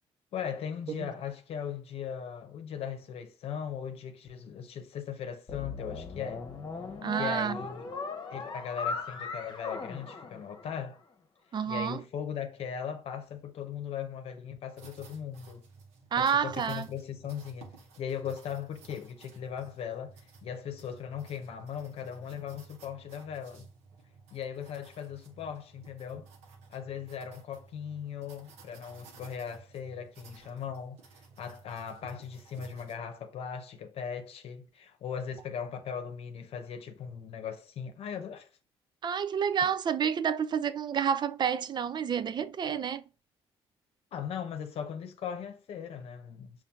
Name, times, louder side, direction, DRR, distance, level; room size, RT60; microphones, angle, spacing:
voice 1, 0.3-6.5 7.2-7.9 8.3-11.0 11.7-15.6 16.2-23.7 24.3-26.3 26.7-31.0 31.4-38.5 44.1-46.6, left 8 dB, 65° left, 0.8 m, -38 dB
sound 1, 5.5-11.0, left 4 dB, 40° left, 1.0 m, -39 dB
voice 2, 7.0-7.6 11.5-12.0 16.1-16.9 39.0-43.0, right 7 dB, 45° right, 0.4 m, -29 dB
sound 2, 14.8-32.9, right 4 dB, 80° right, 0.9 m, -54 dB
5.4 x 2.6 x 2.4 m
supercardioid pair, 65°, 11 cm